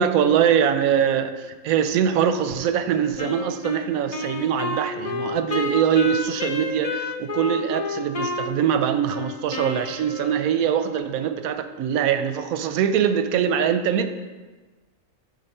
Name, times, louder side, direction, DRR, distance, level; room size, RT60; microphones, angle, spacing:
voice 1, 0.0-14.1, right 8 dB, 90° right, 10 dB, 1.1 m, -23 dB
Wind instrument woodwind instrument, 3.2-10.7, left 3 dB, 55° left, 0.4 m, -30 dB
9.1 x 3.7 x 5.4 m, 1.3 s
omnidirectional pair, 1.4 m